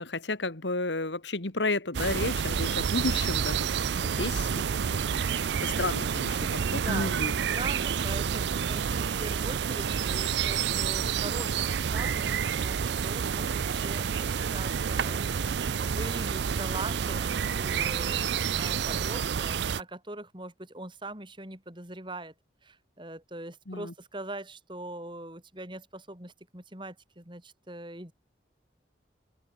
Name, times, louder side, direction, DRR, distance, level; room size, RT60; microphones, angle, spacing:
voice 1, 0.0-3.6 4.0-7.3 23.7-23.9, left 2 dB, 85° left, 2.4 m, -32 dB
sound 1, 1.9-19.8, right 7 dB, 75° right, 0.5 m, -29 dB
voice 2, 6.7-22.3 22.6-28.1, right 2 dB, 25° right, 6.0 m, -42 dB
open air
head